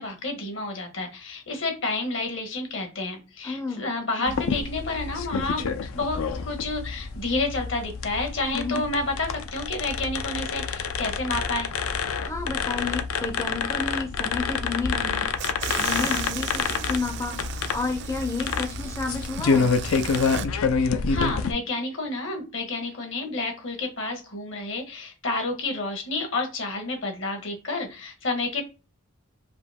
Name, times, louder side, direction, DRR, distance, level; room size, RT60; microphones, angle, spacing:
voice 1, 0.0-5.6 5.9-11.7 20.8-28.6, left 2 dB, 65° left, 4 dB, 1.4 m, -30 dB
voice 2, 3.4-3.9 4.2-4.4 8.5-8.8 12.2-19.7, left 4 dB, 15° left, 4 dB, 0.4 m, -31 dB
sound 1, 4.3-21.5, left 5 dB, 85° left, 0.5 m, -28 dB
sound 2, 15.4-20.5, right 9 dB, 55° right, 0.4 m, -36 dB
4.9 x 2.6 x 3.5 m, 0.30 s
head